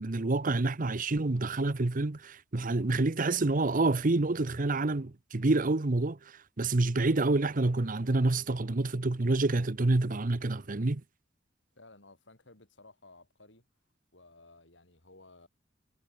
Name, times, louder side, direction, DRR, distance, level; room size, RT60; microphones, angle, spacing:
voice 1, 0.0-11.0, right 2 dB, 45° right, 0.9 m, -28 dB
voice 2, 11.7-13.7 14.1-15.5, left 2 dB, 75° left, 5.1 m, -56 dB
head